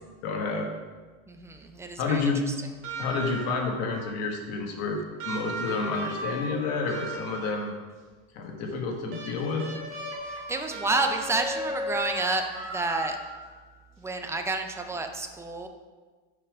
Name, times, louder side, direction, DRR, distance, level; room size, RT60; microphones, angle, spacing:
voice 1, 0.2-0.7 2.0-2.4 3.0-7.7 8.3-9.7, left 4 dB, 55° left, 1 dB, 1.5 m, -29 dB
voice 2, 1.3-2.2 2.5-2.6 10.2-13.2 14.0-15.7, right 3 dB, 10° right, 5 dB, 0.4 m, -30 dB
sound 1, 2.8-3.8 5.2-7.8 9.1-13.6 14.9-15.0, right 1 dB, 40° right, 1.9 m, -36 dB
6.7 x 5.4 x 5.1 m, 1.4 s
cardioid pair, 160°, 31 cm